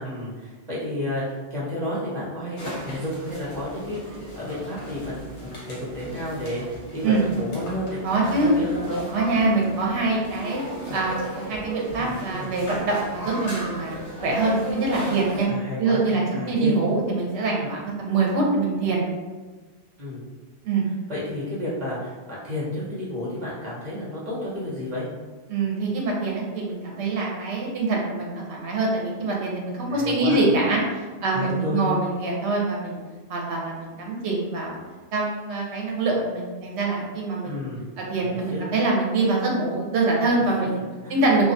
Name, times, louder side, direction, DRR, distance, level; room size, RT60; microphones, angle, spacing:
voice 1, 0.0-2.6 2.8-9.1 15.4-16.1 16.3-16.8 17.6-17.7 20.0-20.2 21.1-25.1 29.9-30.5 31.3-31.8 37.4-37.9 38.2-38.6 40.6-41.2, left 1 dB, 40° right, -8 dB, 0.9 m, -31 dB
sound 1, 2.6-15.4, equal, 50° left, 0.9 m, -36 dB
voice 2, 8.0-8.5 9.1-10.6 10.9-14.0 14.2-15.5 15.8-19.0 20.6-20.8 25.5-33.0 33.3-34.8 35.1-37.6 38.1-40.8 41.1-41.5, right 3 dB, 80° right, -2 dB, 0.9 m, -24 dB
2.3 x 2.2 x 2.5 m, 1.3 s
omnidirectional pair, 1.1 m